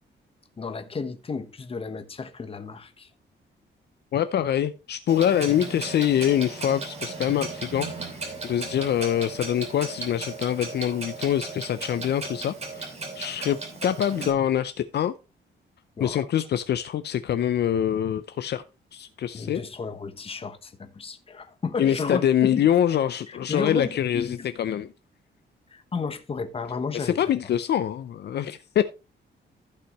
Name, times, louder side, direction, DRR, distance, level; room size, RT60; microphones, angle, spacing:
voice 1, 0.6-3.1 16.0-16.4 19.3-22.7 23.3-24.5 25.7-27.3, left 4 dB, 30° left, 1.1 m, -33 dB
voice 2, 4.1-8.2 8.4-15.1 16.0-18.6 18.9-19.6 21.8-24.9 26.9-28.8, left 10 dB, 60° left, 0.5 m, -25 dB
Clock, 5.1-14.3, right 3 dB, 35° right, 2.7 m, -36 dB
15.0 x 5.6 x 3.0 m
wide cardioid pair, 150°, 19 cm